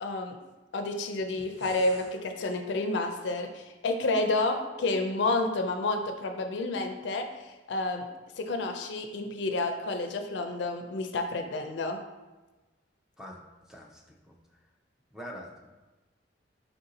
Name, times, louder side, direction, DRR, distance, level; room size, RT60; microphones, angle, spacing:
voice 1, 0.0-0.4 0.7-7.3 7.7-8.1 8.4-12.0, left 2 dB, 70° left, 6 dB, 0.4 m, -30 dB
sound 1, 1.2-2.2, right 1 dB, 65° right, 1.1 m, -49 dB
voice 2, 13.7-14.0 15.1-15.7, equal, 5° right, 0 dB, 0.5 m, -43 dB
4.5 x 2.7 x 3.8 m, 1.2 s
head